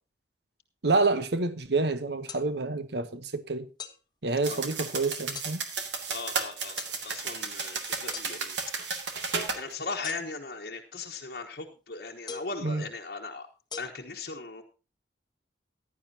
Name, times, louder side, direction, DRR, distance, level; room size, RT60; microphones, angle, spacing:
voice 1, 0.8-3.7 4.2-5.6 12.6-12.8, right 3 dB, 70° right, 1.0 m, -28 dB
sound 1, 2.3-2.4 3.8-4.0 5.3-5.5 6.8-6.9 8.1-8.3 10.0-10.5 12.3-12.6 13.7-13.8, left 6 dB, 25° left, 1.1 m, -40 dB
sound 2, 4.4-9.6, right 5 dB, 85° right, 2.1 m, -33 dB
voice 2, 6.1-8.6 9.5-13.5 13.8-14.6, left 3 dB, 55° left, 1.2 m, -38 dB
15.5 x 11.0 x 2.8 m
head